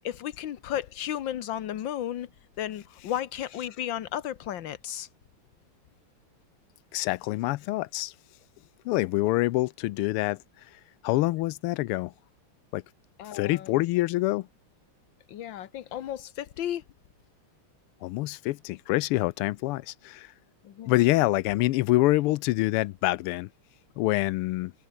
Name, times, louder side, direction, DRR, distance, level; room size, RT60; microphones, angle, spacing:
voice 1, 0.0-2.3 2.6-5.1 13.2-13.8 15.3-16.8 20.6-21.0, left 11 dB, 65° left, 1.6 m, -34 dB
voice 2, 6.9-8.1 8.8-10.4 11.0-12.1 12.7-12.8 13.3-14.5 18.0-20.3 20.9-23.5 24.0-24.7, left 18 dB, 85° left, 1.5 m, -26 dB
omnidirectional pair, 2.4 m